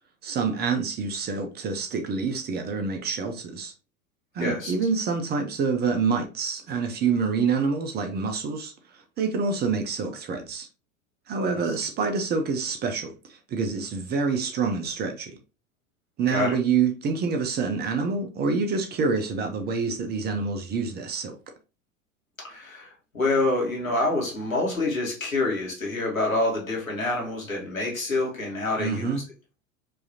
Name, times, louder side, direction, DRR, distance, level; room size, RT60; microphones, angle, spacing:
voice 1, 0.2-3.7 4.3-10.7 11.3-15.3 16.2-21.4 28.8-29.2, right 5 dB, 25° right, 0.7 m, -27 dB
voice 2, 4.4-4.7 16.3-16.5 22.4-29.1, left 2 dB, 85° left, 1.6 m, -27 dB
4.8 x 2.8 x 2.7 m
figure-of-eight pair, 80°, 40 cm